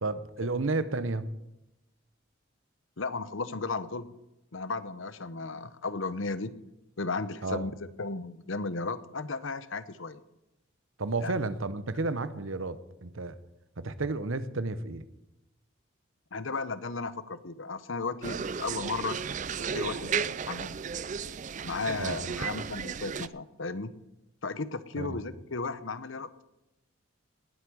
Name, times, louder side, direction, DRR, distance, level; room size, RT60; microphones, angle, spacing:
voice 1, 0.0-1.3 7.4-7.7 11.0-13.4 13.8-15.0 22.0-22.4 25.0-25.2, right 3 dB, 75° right, 14 dB, 1.0 m, -32 dB
voice 2, 3.0-4.1 4.5-6.6 7.0-10.2 11.2-11.4 16.3-19.2 19.6-20.8 21.6-24.0 24.4-26.3, left 3 dB, 70° left, 14 dB, 0.9 m, -35 dB
sound 1, 18.2-23.3, right 6 dB, 35° right, 0.4 m, -34 dB
18.5 x 8.2 x 6.3 m, 0.94 s
head